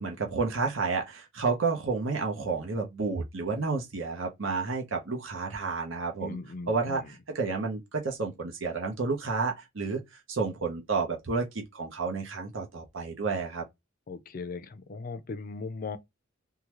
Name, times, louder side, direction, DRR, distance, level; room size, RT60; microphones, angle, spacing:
voice 1, 0.0-6.4 6.7-13.6, right 4 dB, 70° right, 0.9 m, -31 dB
voice 2, 6.2-7.1 14.1-16.0, left 4 dB, 45° left, 0.4 m, -38 dB
3.7 x 2.3 x 3.0 m
head